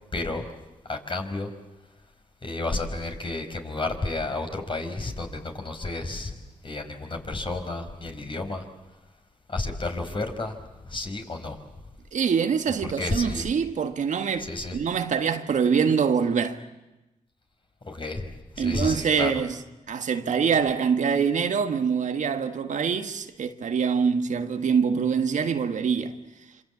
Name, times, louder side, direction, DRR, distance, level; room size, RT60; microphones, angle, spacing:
voice 1, 0.1-0.5 0.8-1.5 2.4-8.6 9.5-11.6 13.0-13.5 14.4-14.8 17.9-18.3 18.5-19.4, left 2 dB, 40° left, 5.4 m, -31 dB
voice 2, 12.1-16.6 18.6-19.5 19.9-26.1, right 6 dB, 70° right, 1.6 m, -24 dB
26.5 x 25.5 x 8.4 m
supercardioid pair, 50°, 13 cm